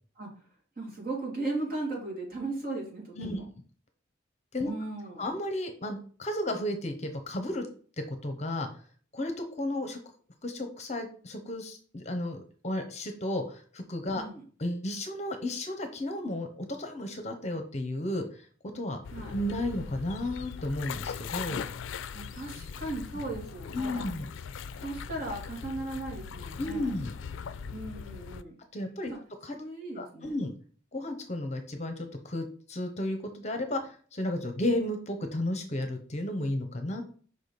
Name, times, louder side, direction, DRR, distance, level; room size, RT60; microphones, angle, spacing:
voice 1, 0.8-3.4 4.6-5.2 14.1-14.4 19.1-19.3 22.1-24.1 24.8-26.9 27.7-28.6 29.1-29.2 29.5-30.3, right 2 dB, 50° right, -3 dB, 2.9 m, -37 dB
voice 2, 5.2-7.7 8.1-8.7 9.1-10.0 10.4-14.2 14.6-18.4 18.7-19.0 19.3-21.6 23.7-24.3 26.6-27.1 28.7-29.1 29.4-29.6 30.0-30.5 30.9-37.0, left 1 dB, 35° left, 6 dB, 0.9 m, -33 dB
sound 1, 19.0-28.4, left 6 dB, 75° left, 0.4 m, -40 dB
5.3 x 5.0 x 4.1 m, 0.42 s
head